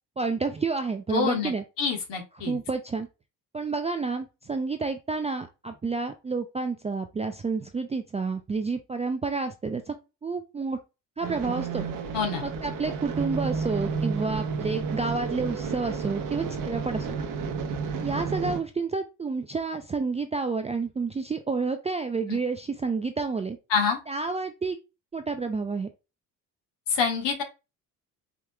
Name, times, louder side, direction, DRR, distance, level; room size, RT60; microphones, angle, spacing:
voice 1, 0.2-1.6 2.5-3.1 3.5-9.9 10.2-10.8 11.2-11.9 12.4-17.2 18.0-23.6 24.1-24.8 25.1-25.9, right 4 dB, 15° right, 7 dB, 0.4 m, -29 dB
voice 2, 1.1-1.5 1.8-2.6 12.1-12.4 22.3-22.4 23.7-24.0 26.9-27.4, left 5 dB, 55° left, 2 dB, 1.5 m, -26 dB
sound 1, 11.2-18.6, right 5 dB, 40° right, 0.9 m, -31 dB
4.9 x 2.9 x 2.2 m, 0.27 s
hypercardioid pair, 50°, 50 cm